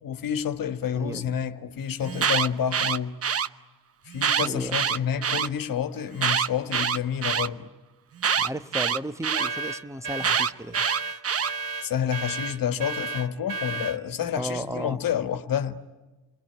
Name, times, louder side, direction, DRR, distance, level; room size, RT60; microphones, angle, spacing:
voice 1, 0.0-3.2 4.0-7.7 11.8-15.8, left 8 dB, 70° left, 1.5 m, -29 dB
voice 2, 0.9-1.4 4.4-4.8 8.4-10.9 14.3-15.0, right 1 dB, 10° right, 1.1 m, -34 dB
Alarm, 2.0-3.5 4.1-5.5 6.1-7.5 8.2-9.5 10.2-11.5, right 7 dB, 40° right, 0.9 m, -25 dB
sound 1, 9.3-14.0, right 3 dB, 80° right, 1.6 m, -33 dB
29.0 x 22.0 x 9.1 m
cardioid pair, 90°, 35 cm